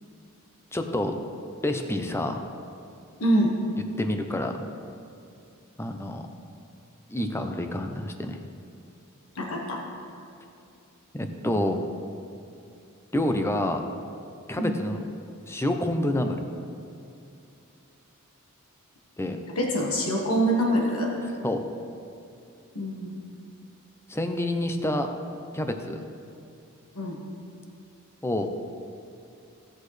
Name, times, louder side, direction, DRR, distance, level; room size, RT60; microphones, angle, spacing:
voice 1, 0.7-1.1 1.6-2.4 4.0-4.5 5.8-6.2 7.1-8.4 11.1-11.8 13.1-13.8 14.5-15.0 15.5-16.4 19.2-19.4 21.4-21.6 24.1-25.1 25.5-26.0 28.2-28.5, left 1 dB, 10° left, 5 dB, 0.6 m, -27 dB
voice 2, 3.2-3.5 9.3-9.8 14.6-14.7 19.6-21.1 22.7-23.1 27.0-27.2, equal, 80° left, -1 dB, 1.4 m, -25 dB
16.0 x 6.4 x 3.3 m, 2.6 s
head